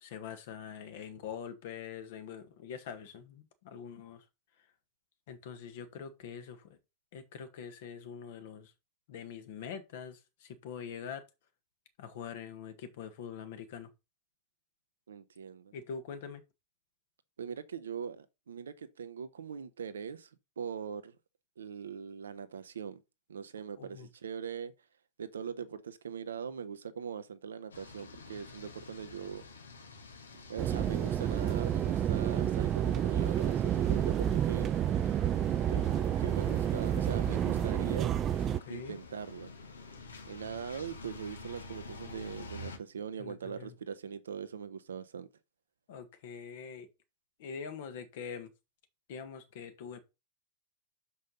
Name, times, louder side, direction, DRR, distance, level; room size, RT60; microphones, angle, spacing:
voice 1, 0.0-4.2 5.3-6.8 7.1-8.7 9.1-11.2 12.0-13.9 15.7-16.4 23.8-24.1 38.6-39.0 43.2-43.7 45.9-46.9 47.4-48.5 49.1-50.0, left 7 dB, 55° left, 1.6 m, -44 dB
voice 2, 15.1-15.7 17.4-20.3 20.6-21.1 21.6-23.0 23.3-24.7 25.2-29.4 30.5-34.8 35.7-38.1 38.7-39.5 40.3-45.3, right 7 dB, 70° right, 0.8 m, -41 dB
sound 1, 27.7-42.8, left 3 dB, 70° left, 1.4 m, -49 dB
sound 2, 30.6-38.6, right 10 dB, 30° right, 0.3 m, -29 dB
6.4 x 5.5 x 5.4 m
figure-of-eight pair, 90°, 0 cm